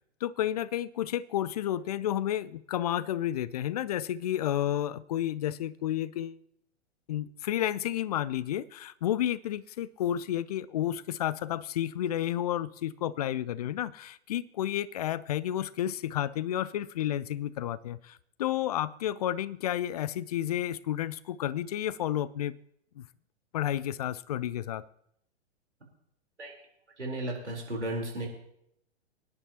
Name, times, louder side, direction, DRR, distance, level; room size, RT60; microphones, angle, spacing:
voice 1, 0.2-6.4 7.1-22.6 23.0-23.1 23.5-24.9, left 11 dB, 35° left, 0.4 m, -31 dB
voice 2, 27.0-28.3, right 1 dB, 80° right, 4.0 m, -34 dB
24.0 x 10.0 x 2.9 m
figure-of-eight pair, 110°, 34 cm